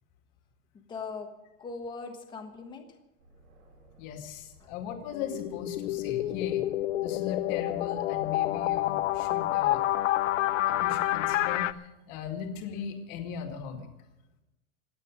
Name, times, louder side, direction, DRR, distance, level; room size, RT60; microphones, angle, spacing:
voice 1, 0.7-1.3 1.6-3.0 4.6-4.7, left 4 dB, 10° left, 4 dB, 1.3 m, -40 dB
Aircraft, 3.2-11.7, right 3 dB, 80° right, 6.3 m, -58 dB
voice 2, 4.0-6.6 7.0-9.8 10.7-13.9, left 7 dB, 30° left, 4 dB, 2.2 m, -38 dB
sound 1, 5.1-11.7, left 14 dB, 60° left, 0.7 m, -28 dB
26.5 x 9.2 x 5.2 m, 0.96 s
supercardioid pair, 180°, 43 cm